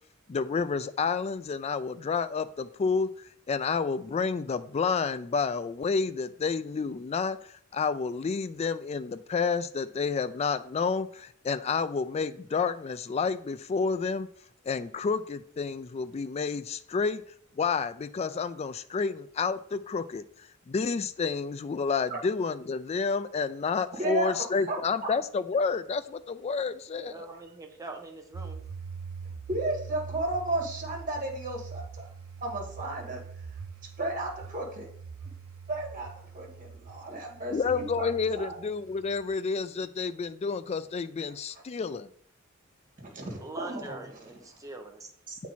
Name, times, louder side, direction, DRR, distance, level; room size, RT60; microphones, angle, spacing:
voice 1, 0.3-14.3 14.7-17.2 17.6-27.1 37.5-42.1, left 5 dB, 30° left, 13 dB, 0.3 m, -30 dB
voice 2, 24.0-24.8 29.5-32.1 32.4-33.2 34.0-34.9 35.7-36.1 36.3-38.1 38.3-38.6 43.0-44.0 45.3-45.4, right 1 dB, 40° right, 0 dB, 2.0 m, -33 dB
voice 3, 27.0-28.6 43.4-45.1, right 2 dB, 15° right, 3 dB, 1.0 m, -43 dB
sound 1, 28.3-39.3, right 5 dB, 90° right, 0.5 m, -43 dB
8.1 x 4.5 x 4.2 m, 0.62 s
head